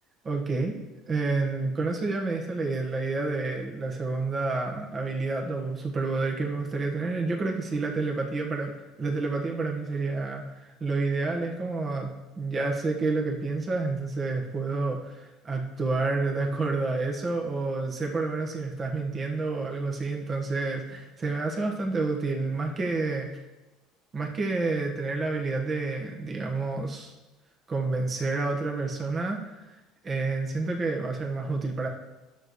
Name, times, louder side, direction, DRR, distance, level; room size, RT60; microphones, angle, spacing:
voice 1, 0.2-0.7 1.1-8.7 9.0-23.3 24.1-27.1 27.7-29.8 30.0-31.9, right 3 dB, 35° right, 1 dB, 1.4 m, -29 dB
11.5 x 6.7 x 3.2 m, 1.1 s
hypercardioid pair, 75°, 0 cm